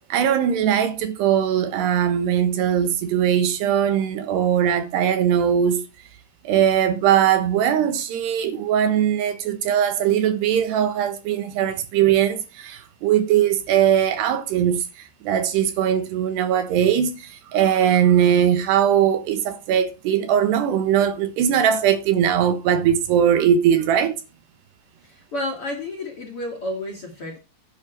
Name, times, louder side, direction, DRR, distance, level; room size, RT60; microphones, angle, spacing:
voice 1, 0.1-5.8 6.4-14.8 15.2-24.2, right 9 dB, 70° right, 3.2 m, -20 dB
voice 2, 25.0-27.4, left 1 dB, 40° left, 2.3 m, -31 dB
10.5 x 9.5 x 4.5 m
omnidirectional pair, 5.3 m